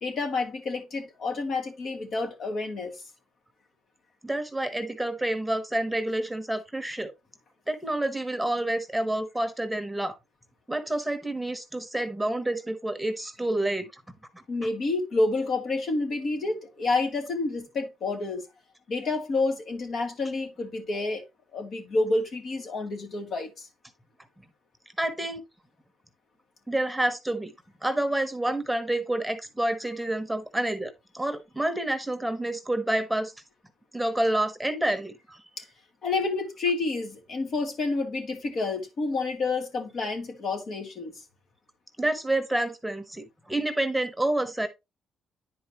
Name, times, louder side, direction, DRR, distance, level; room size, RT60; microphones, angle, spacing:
voice 1, 0.0-2.9 14.5-18.4 18.9-21.2 21.5-23.7 35.6-35.7 36.0-41.1, left 3 dB, 60° left, 2.4 m, -29 dB
voice 2, 4.2-7.1 7.7-10.2 10.7-14.0 25.0-25.4 26.7-27.5 27.8-33.3 33.9-35.4 42.0-44.7, right 1 dB, 5° right, 1.2 m, -28 dB
10.0 x 4.7 x 3.0 m
cardioid pair, 90°, 0 cm